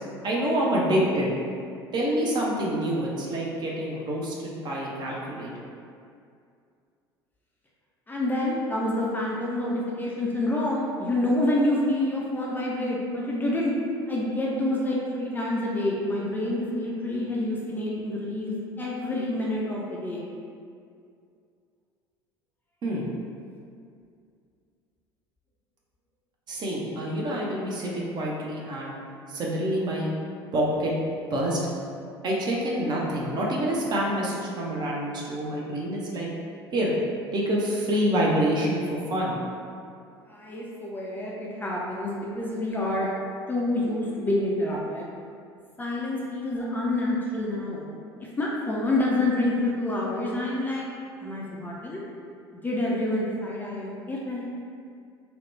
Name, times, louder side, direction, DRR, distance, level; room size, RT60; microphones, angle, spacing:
voice 1, 0.2-1.4 1.9-5.7 22.8-23.1 26.5-29.0 29.3-30.1 30.5-30.9 31.3-31.6 32.2-36.3 36.7-36.9 37.3-39.4, right 1 dB, 35° right, -4 dB, 0.6 m, -27 dB
voice 2, 8.1-13.7 14.1-20.2 40.3-43.1 43.5-45.0 45.8-47.9 48.2-50.9 51.2-52.0 52.6-54.5, left 1 dB, 15° left, -5 dB, 0.4 m, -27 dB
2.9 x 2.1 x 3.1 m, 2.4 s
figure-of-eight pair, 65°, 13 cm